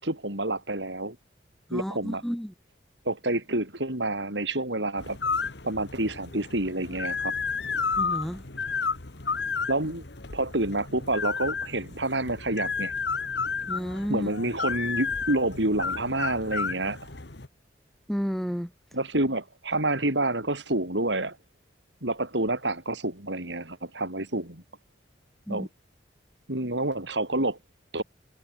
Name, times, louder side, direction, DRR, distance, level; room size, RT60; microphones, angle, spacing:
voice 1, 0.0-1.2 1.7-2.2 3.1-5.2 5.6-7.3 9.7-10.0 10.3-12.9 14.1-17.0 18.9-21.4 22.0-24.6 25.5-25.7 26.5-27.6 27.9-28.0, right 2 dB, 80° right, 7.0 m, -28 dB
voice 2, 1.7-2.5 8.0-8.4 13.7-14.3 18.1-18.7 25.5-25.7, equal, ahead, 2.7 m, -31 dB
sound 1, 5.0-17.5, left 5 dB, 70° left, 1.6 m, -32 dB
head